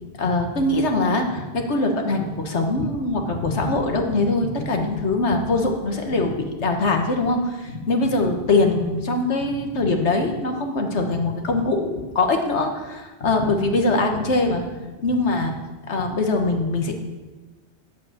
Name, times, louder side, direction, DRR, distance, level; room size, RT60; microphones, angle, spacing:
voice 1, 0.1-14.6 15.0-15.5 15.9-16.9, left 2 dB, 80° left, 4 dB, 1.6 m, -22 dB
9.3 x 7.8 x 7.4 m, 1.2 s
omnidirectional pair, 1.2 m